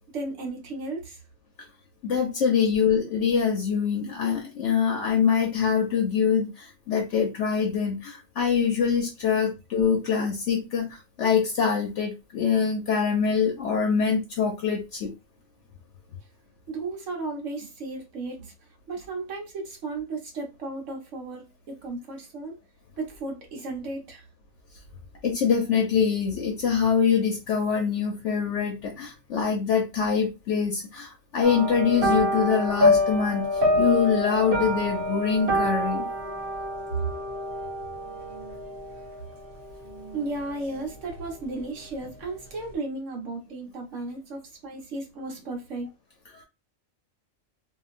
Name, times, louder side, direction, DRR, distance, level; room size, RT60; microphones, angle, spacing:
voice 1, 0.1-1.2 16.7-18.5 18.9-22.5 23.0-24.2 40.1-45.9, right 3 dB, 70° right, 1.2 m, -34 dB
voice 2, 2.0-15.1 25.2-33.5 33.8-36.1 46.3-46.4, left 6 dB, 65° left, 0.9 m, -24 dB
sound 1, 31.4-41.0 41.3-41.7 42.0-42.1, left 1 dB, 50° right, 0.8 m, -27 dB
2.8 x 2.5 x 2.5 m
omnidirectional pair, 1.4 m